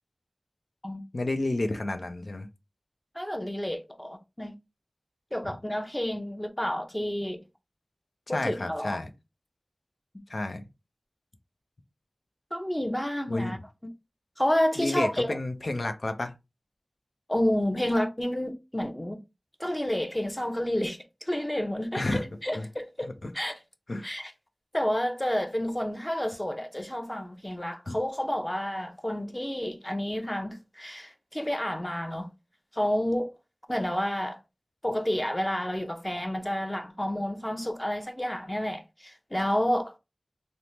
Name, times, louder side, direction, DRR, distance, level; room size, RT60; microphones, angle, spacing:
voice 1, 1.1-2.5 8.3-9.1 10.3-10.6 13.3-13.6 14.8-16.3 21.9-22.2 22.5-22.7 23.0-23.3 23.9-24.1 27.9-28.0, left 2 dB, 80° left, 0.5 m, -31 dB
voice 2, 3.2-4.5 5.3-7.4 8.3-9.0 12.5-13.6 14.4-15.3 17.3-19.2 19.6-23.6 24.0-24.3 24.7-32.3 32.7-33.3 33.7-34.4 34.8-39.9, left 1 dB, 15° left, 0.5 m, -30 dB
3.3 x 2.0 x 2.8 m
wide cardioid pair, 55°, 0 cm